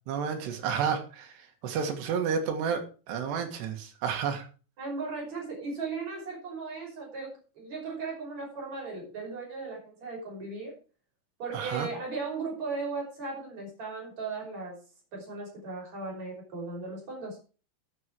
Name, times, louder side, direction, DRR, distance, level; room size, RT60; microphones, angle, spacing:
voice 1, 0.1-4.5 11.5-11.9, right 6 dB, 85° right, 5 dB, 4.0 m, -31 dB
voice 2, 4.8-10.8 11.4-14.8 15.1-17.4, right 4 dB, 40° right, -1 dB, 6.7 m, -37 dB
13.0 x 8.6 x 4.7 m, 0.36 s
omnidirectional pair, 4.8 m